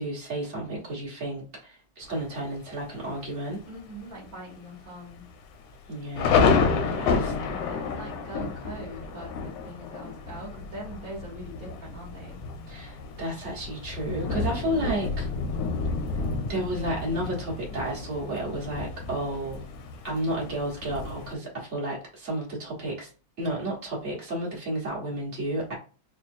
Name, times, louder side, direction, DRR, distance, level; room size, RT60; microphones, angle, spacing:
voice 1, 0.0-3.6 5.9-6.6 6.9-7.2 12.7-15.3 16.5-19.6 20.0-23.1 23.4-25.7, right 1 dB, 40° right, -5 dB, 1.0 m, -32 dB
Thunder, 2.0-2.6 3.1-3.2 3.5-3.9 4.3-4.4 5.1-21.3, left 5 dB, 80° left, 1.7 m, -30 dB
voice 2, 3.7-5.2 6.9-12.4, right 1 dB, 80° right, -5 dB, 0.7 m, -42 dB
5.0 x 2.2 x 2.6 m, 0.37 s
omnidirectional pair, 3.4 m